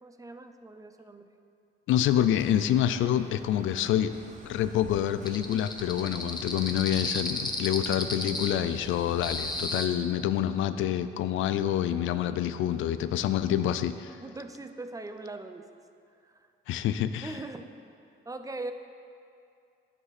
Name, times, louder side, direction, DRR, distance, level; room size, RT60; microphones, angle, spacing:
voice 1, 0.0-1.3 14.2-15.7 16.2-16.5 17.2-17.7 18.2-18.7, right 2 dB, 15° right, 8 dB, 0.5 m, -40 dB
voice 2, 1.9-4.1 4.4-14.2 16.7-17.3, left 11 dB, 80° left, 11 dB, 0.4 m, -27 dB
sound 1, 2.1-9.6, right 4 dB, 35° right, 0.9 m, -50 dB
sound 2, 5.3-9.9, left 2 dB, 20° left, 1.0 m, -33 dB
9.7 x 8.1 x 4.1 m, 2.5 s
cardioid pair, 90°, 20 cm